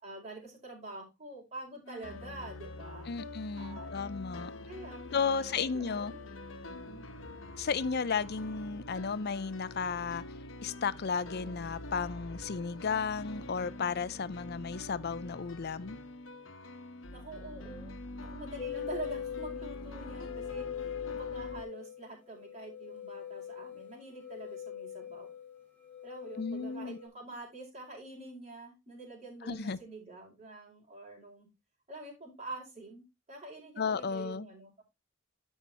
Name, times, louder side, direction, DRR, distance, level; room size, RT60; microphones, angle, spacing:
voice 1, 0.0-3.1 3.6-4.0 4.7-6.2 6.7-7.0 17.1-25.3 26.0-31.5 31.9-34.8, right 2 dB, 35° right, 5.0 m, -46 dB
sound 1, 1.9-21.6, left 1 dB, 80° left, 1.1 m, -45 dB
voice 2, 3.1-4.5 5.1-6.1 7.6-10.2 10.6-16.0 26.4-27.0 29.5-29.8 33.8-34.5, left 5 dB, 55° left, 0.6 m, -34 dB
sound 2, 18.6-27.1, left 9 dB, 10° left, 2.6 m, -42 dB
12.0 x 5.6 x 2.9 m
head